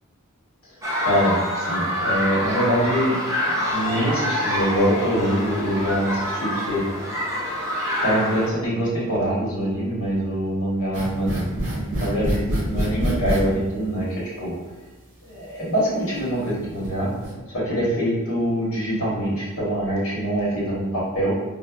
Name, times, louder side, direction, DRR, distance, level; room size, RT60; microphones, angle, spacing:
sound 1, 0.8-8.5, left 1 dB, 15° right, 0.5 m, -26 dB
voice 1, 1.0-3.2 3.5-6.8 8.0-14.6 15.2-17.1 17.5-21.3, equal, 85° left, -7 dB, 1.0 m, -24 dB
sound 2, 10.9-13.4 14.5-14.6 15.3-15.4 16.2-16.9 17.1-17.3, equal, 60° right, 1.1 m, -26 dB
4.6 x 2.1 x 2.2 m, 1.2 s
head